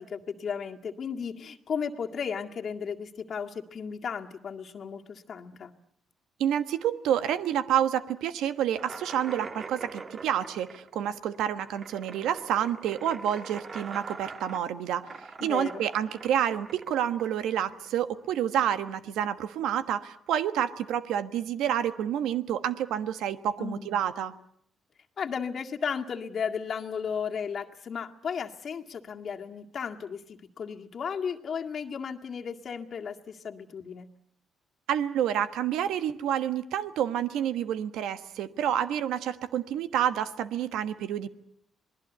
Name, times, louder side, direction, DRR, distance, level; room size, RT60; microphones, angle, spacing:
voice 1, 0.0-5.7 15.4-15.8 23.6-24.0 25.2-34.1, left 6 dB, 55° left, 3 dB, 1.9 m, -35 dB
voice 2, 6.4-15.1 15.4-24.3 34.9-41.3, right 10 dB, 85° right, 11 dB, 1.3 m, -29 dB
sound 1, 8.8-18.1, right 4 dB, 35° right, 1.4 m, -43 dB
27.0 x 20.0 x 8.1 m, 0.66 s
cardioid pair, 90°, 0 cm